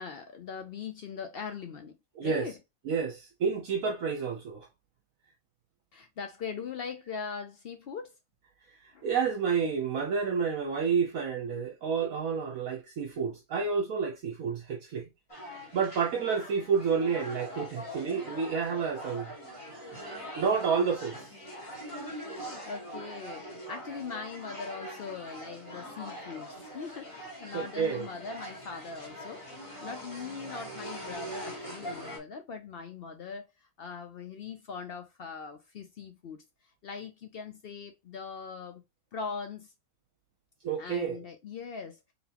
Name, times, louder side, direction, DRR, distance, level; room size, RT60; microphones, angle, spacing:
voice 1, 0.0-2.0 2.2-2.6 5.9-8.2 8.9-9.1 22.1-29.4 29.8-33.5 33.8-36.4 36.8-38.8 39.1-39.7 40.8-42.0, left 5 dB, 65° left, 0.5 m, -41 dB
voice 2, 2.2-2.5 2.9-4.7 8.8-15.0 15.7-19.3 19.7-21.1 27.5-28.1 40.6-41.2, right 6 dB, 65° right, 1.1 m, -30 dB
sound 1, 15.3-32.2, equal, 20° left, 1.4 m, -42 dB
3.9 x 3.8 x 2.9 m
omnidirectional pair, 1.6 m